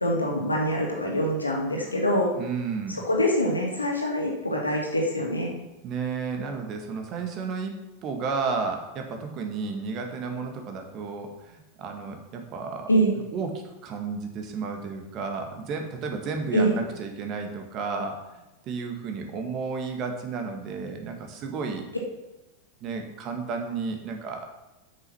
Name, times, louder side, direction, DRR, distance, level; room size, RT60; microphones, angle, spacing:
voice 1, 0.0-2.3 2.9-5.5 12.9-13.1 16.5-16.8, equal, 80° left, -1 dB, 2.3 m, -24 dB
voice 2, 2.4-3.0 5.8-7.7 8.0-12.9 13.3-18.2 18.6-21.9 22.8-24.5, right 4 dB, 35° right, 4 dB, 1.7 m, -32 dB
8.2 x 6.4 x 6.1 m, 1.0 s
figure-of-eight pair, 90°, 0 cm